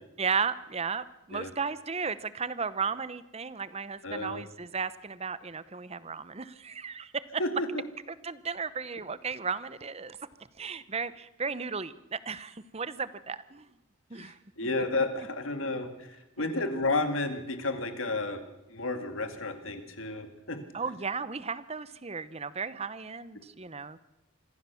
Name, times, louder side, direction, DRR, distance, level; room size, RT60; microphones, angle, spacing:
voice 1, 0.2-7.4 8.1-10.3 10.6-13.7 14.1-14.4 16.4-16.5 20.7-24.0, right 5 dB, 30° right, 16 dB, 0.8 m, -35 dB
voice 2, 4.0-4.4 7.4-7.8 14.2-18.4 18.7-20.6, left 2 dB, 70° left, 7 dB, 2.3 m, -32 dB
25.5 x 15.5 x 7.1 m, 0.95 s
head